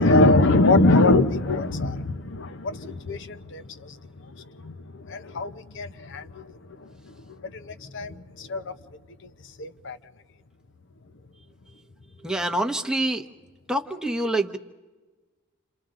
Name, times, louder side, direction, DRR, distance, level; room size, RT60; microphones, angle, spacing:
voice 1, 0.0-3.9 4.6-4.7 5.1-6.3 7.6-8.7 9.6-10.0, left 2 dB, 55° left, 0.9 m, -22 dB
voice 2, 12.2-13.3 13.7-14.6, right 1 dB, 5° right, 0.9 m, -26 dB
29.5 x 28.0 x 3.8 m
head